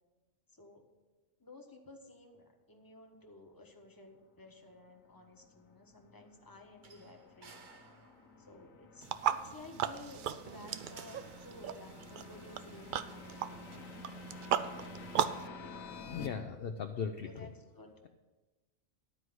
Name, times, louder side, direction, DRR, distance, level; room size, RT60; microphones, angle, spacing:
voice 1, 0.5-0.8 1.4-7.7 8.4-13.9 17.2-17.9, left 2 dB, 15° left, 2 dB, 1.1 m, -54 dB
sound 1, 4.8-16.3, left 3 dB, 80° left, 1.3 m, -51 dB
sound 2, 6.8-8.6 9.9-12.0, right 4 dB, 45° right, 0.9 m, -55 dB
sound 3, 9.0-15.5, right 9 dB, 70° right, 0.4 m, -37 dB
voice 2, 16.1-17.5, left 6 dB, 60° left, 7 dB, 0.7 m, -38 dB
12.0 x 4.7 x 7.8 m, 1.2 s
omnidirectional pair, 1.4 m